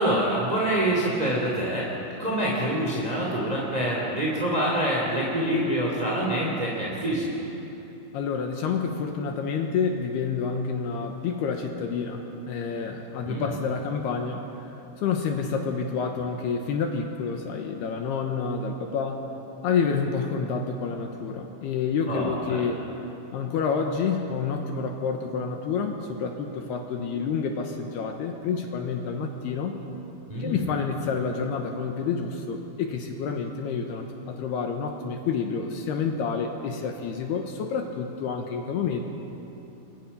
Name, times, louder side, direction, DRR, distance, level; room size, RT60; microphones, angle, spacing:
voice 1, 0.0-1.9 2.2-7.3 13.3-13.5 22.1-22.6 30.3-30.7, right 1 dB, 10° right, -4 dB, 1.9 m, -26 dB
voice 2, 8.1-14.4 15.0-19.2 19.6-22.9 23.3-29.8 30.4-39.0, left 5 dB, 70° left, 3 dB, 2.8 m, -28 dB
29.5 x 22.5 x 5.6 m, 3.0 s
omnidirectional pair, 5.6 m